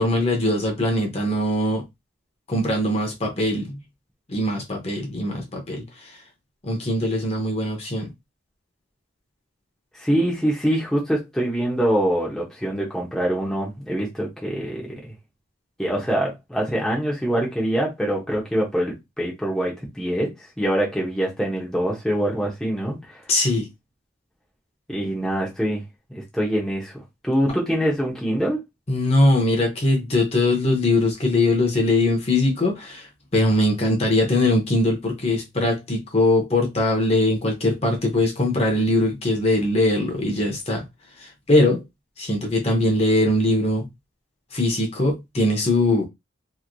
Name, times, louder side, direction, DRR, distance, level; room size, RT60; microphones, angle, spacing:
voice 1, 0.0-1.8 2.5-3.8 4.3-6.2 6.6-8.1 23.3-23.7 28.9-40.8 41.2-41.8 42.2-43.9 44.5-46.1, left 1 dB, 30° left, 0.8 m, -21 dB
voice 2, 9.9-14.8 15.8-23.2 24.9-25.8 26.1-26.9 27.2-28.6, right 1 dB, ahead, 0.8 m, -24 dB
3.0 x 2.8 x 2.6 m
head